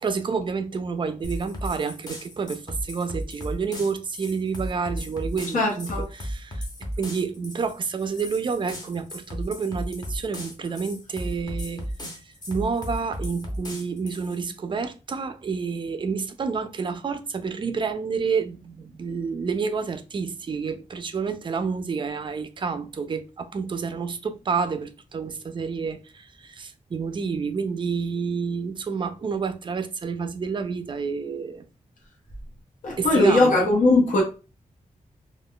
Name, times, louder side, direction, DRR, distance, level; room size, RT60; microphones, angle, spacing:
voice 1, 0.0-6.7 7.0-11.9 12.2-31.6 33.0-33.7, right 5 dB, 40° right, 0.4 m, -29 dB
sound 1, 1.2-14.4, equal, 30° left, 0.7 m, -35 dB
voice 2, 5.5-6.0 32.8-34.2, left 2 dB, 85° left, 0.9 m, -19 dB
2.3 x 2.3 x 3.6 m
wide cardioid pair, 165°, 13 cm